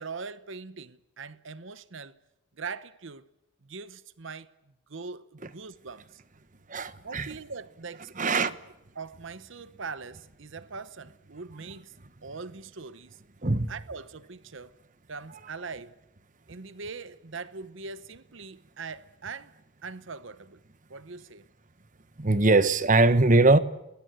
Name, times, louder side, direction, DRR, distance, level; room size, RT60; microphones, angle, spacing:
voice 1, 0.0-2.1 2.6-3.2 3.6-4.5 4.9-6.2 7.0-8.6 8.9-11.9 12.2-13.2 13.7-14.7 15.1-15.9 16.5-19.5 19.8-20.6 20.9-21.4, right 4 dB, 65° right, 0.9 m, -41 dB
voice 2, 6.7-7.3 8.2-8.5 13.4-13.7 22.2-23.6, right 2 dB, 40° right, 1.2 m, -21 dB
28.0 x 20.5 x 9.0 m
head